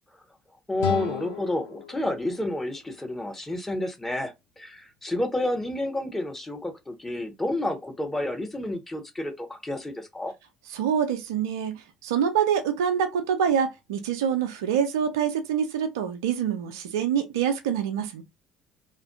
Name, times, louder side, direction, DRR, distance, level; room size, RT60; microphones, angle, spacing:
voice 1, 0.7-10.3, left 1 dB, 15° left, 0.8 m, -30 dB
sound 1, 0.8-3.8, left 10 dB, 65° left, 0.4 m, -36 dB
voice 2, 10.7-11.7 12.0-18.2, right 8 dB, 70° right, 0.4 m, -25 dB
2.5 x 2.4 x 2.3 m
figure-of-eight pair, 55°, 2 cm